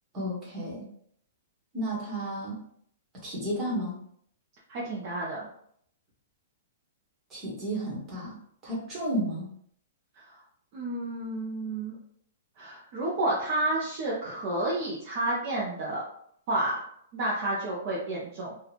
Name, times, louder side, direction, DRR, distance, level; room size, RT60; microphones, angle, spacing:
voice 1, 0.1-0.9 1.7-2.6 3.2-4.0 7.3-8.4 8.6-9.5, right 1 dB, 15° right, -6 dB, 1.2 m, -32 dB
voice 2, 4.7-5.5 10.7-12.0 12.6-16.0 16.5-16.7 17.1-18.5, right 2 dB, 30° right, -6 dB, 0.7 m, -30 dB
2.9 x 2.4 x 4.1 m, 0.67 s
hypercardioid pair, 175°, 0 cm